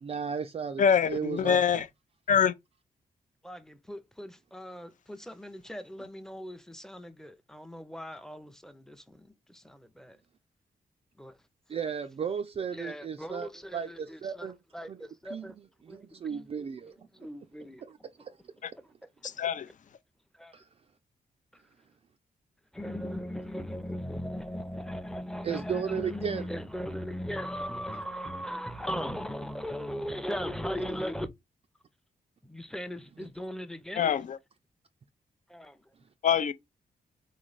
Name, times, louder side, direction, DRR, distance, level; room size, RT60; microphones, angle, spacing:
voice 1, 0.0-1.6 11.7-14.6 14.9-15.0 15.3-16.9 17.9-18.4 20.5-20.6 25.4-26.5 33.2-33.3, right 7 dB, 40° right, 0.4 m, -35 dB
voice 2, 0.8-1.9 2.3-2.5 18.6-18.7 19.2-19.7 34.0-34.4 36.2-36.5, left 7 dB, 55° left, 0.5 m, -24 dB
voice 3, 3.4-10.2 11.2-11.4 12.7-14.5 14.7-15.5 15.9-16.0 16.3-16.5 17.2-17.9 20.4-20.5 22.7-31.3 32.4-34.1 35.5-35.8, equal, 5° left, 0.6 m, -38 dB
4.0 x 3.2 x 3.9 m
cardioid pair, 105°, 15 cm